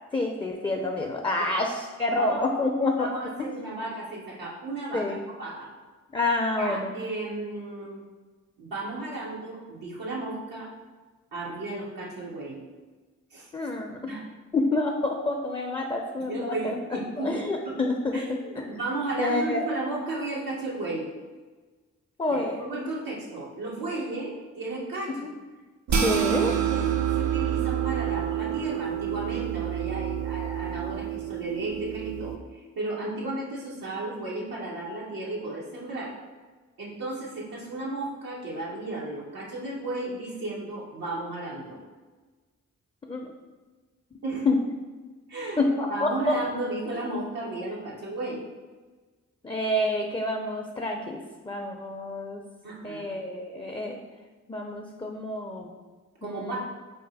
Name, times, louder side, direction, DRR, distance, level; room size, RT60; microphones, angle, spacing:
voice 1, 0.1-3.1 4.9-5.2 6.1-6.9 13.5-14.0 14.5-18.2 18.6-18.7 19.2-19.7 22.2-22.6 25.2-25.3 25.9-26.5 43.1-43.3 44.5-44.6 45.6-46.4 49.4-51.2 51.4-52.4 52.8-54.0 54.5-55.7 56.2-56.6, left 2 dB, 15° left, 2 dB, 0.4 m, -28 dB
voice 2, 2.1-2.4 3.0-5.7 6.6-8.0 8.6-10.7 11.3-12.6 13.3-13.5 14.1-14.2 16.3-17.3 17.6-17.7 18.1-21.1 22.3-25.2 26.4-26.9 27.2-36.1 36.8-41.8 44.2-44.5 45.3-45.6 45.9-48.4 52.6-53.1 56.2-56.6, right 2 dB, 90° right, -5 dB, 0.8 m, -34 dB
sound 1, 25.9-32.4, right 10 dB, 55° right, 0.5 m, -28 dB
4.0 x 2.0 x 3.9 m, 1.3 s
cardioid pair, 45°, 34 cm